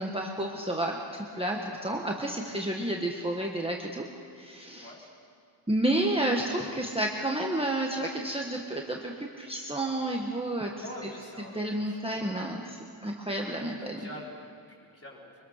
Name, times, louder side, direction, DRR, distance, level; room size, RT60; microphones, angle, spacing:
voice 1, 0.0-4.1 4.3-4.9 5.7-10.7 11.0-11.1 11.5-12.8 13.0-14.0, right 1 dB, 10° right, -1 dB, 1.5 m, -30 dB
voice 2, 10.8-12.9 13.8-15.4, equal, 25° left, -3 dB, 4.6 m, -46 dB
24.0 x 23.0 x 6.6 m, 2.4 s
wide cardioid pair, 145°, 50 cm